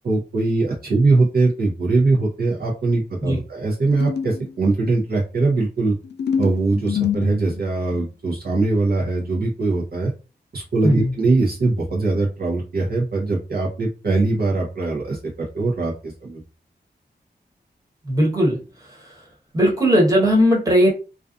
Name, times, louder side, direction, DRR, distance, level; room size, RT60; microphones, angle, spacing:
voice 1, 0.0-5.9 6.4-10.1 10.5-16.4, right 3 dB, 60° right, -3 dB, 0.7 m, -21 dB
sound 1, 3.9-4.5 6.0-8.0, left 8 dB, 75° left, 0.4 m, -26 dB
voice 2, 18.0-19.2 19.5-20.9, equal, 20° right, -3 dB, 1.2 m, -18 dB
2.4 x 2.3 x 2.5 m, 0.32 s
wide cardioid pair, 85°, 18 cm